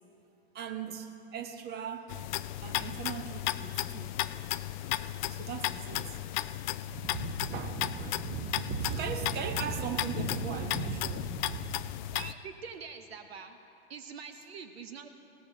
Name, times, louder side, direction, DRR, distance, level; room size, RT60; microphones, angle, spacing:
voice 1, 0.5-2.1 2.6-4.2 5.3-6.2 6.9-11.8, right 7 dB, 30° right, 7 dB, 1.2 m, -37 dB
sound 1, 2.1-12.3, left 15 dB, 45° left, 0.4 m, -35 dB
voice 2, 12.1-13.6 13.9-15.1, right 5 dB, 65° right, 8 dB, 0.9 m, -44 dB
20.0 x 18.0 x 3.0 m, 2.6 s
figure-of-eight pair, 95°, 33 cm